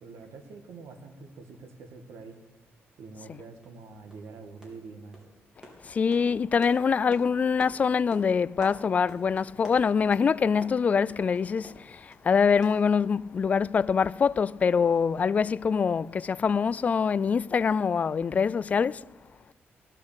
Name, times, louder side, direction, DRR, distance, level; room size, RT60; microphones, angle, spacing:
voice 1, 0.0-2.4 3.0-5.2, right 4 dB, 85° right, 2.0 m, -45 dB
sound 1, 3.6-3.8 4.1-4.3 4.6-4.9 5.1-12.3 12.6-13.4 13.7-13.8 14.1-14.2, equal, 15° right, 3.7 m, -49 dB
voice 2, 5.8-19.0, left 6 dB, 35° left, 0.3 m, -24 dB
16.5 x 6.6 x 8.8 m
cardioid pair, 135°, 4 cm